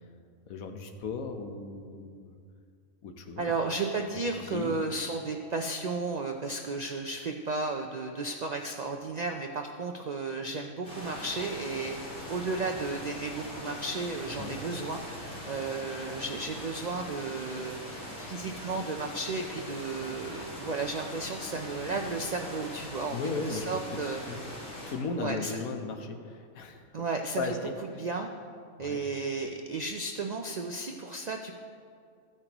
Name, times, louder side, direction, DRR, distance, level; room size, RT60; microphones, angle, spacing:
voice 1, 0.5-2.3 3.0-3.5 4.4-4.7 14.4-14.6 23.1-23.8 24.3-24.4 24.9-26.9 27.4-27.7 28.8-29.0, left 4 dB, 90° left, 5 dB, 1.3 m, -36 dB
voice 2, 3.4-12.0 12.3-15.0 15.5-24.2 25.2-25.6 26.9-27.5 28.0-28.3 28.8-31.5, right 3 dB, 90° right, 3 dB, 0.3 m, -33 dB
sound 1, 10.8-24.9, equal, 40° left, 2.5 m, -41 dB
14.0 x 8.9 x 3.0 m, 2.2 s
omnidirectional pair, 1.4 m